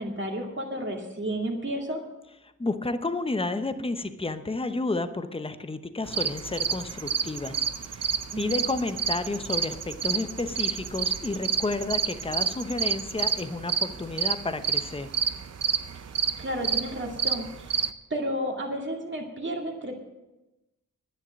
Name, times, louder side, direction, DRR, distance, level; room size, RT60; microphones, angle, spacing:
voice 1, 0.0-2.0 8.3-8.6 16.4-17.8 18.1-19.9, right 1 dB, 40° right, 1 dB, 2.2 m, -32 dB
voice 2, 2.6-7.6 8.4-15.1, left 2 dB, 20° left, 10 dB, 0.9 m, -31 dB
sound 1, 6.1-17.9, right 7 dB, 55° right, 0.7 m, -29 dB
10.5 x 10.0 x 6.4 m, 1.0 s
wide cardioid pair, 80°, 31 cm